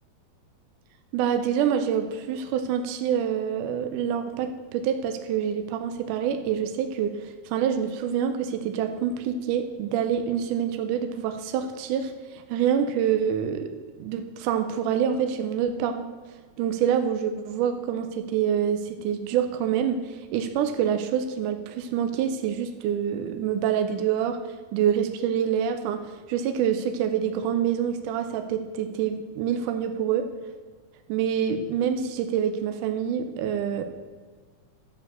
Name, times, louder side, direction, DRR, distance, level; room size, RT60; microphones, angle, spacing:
voice 1, 1.1-13.7 14.0-16.1 16.6-24.4 24.7-26.0 26.3-30.3 31.1-33.8, right 8 dB, 80° right, 7 dB, 1.9 m, -26 dB
11.5 x 6.7 x 6.7 m, 1.5 s
omnidirectional pair, 4.4 m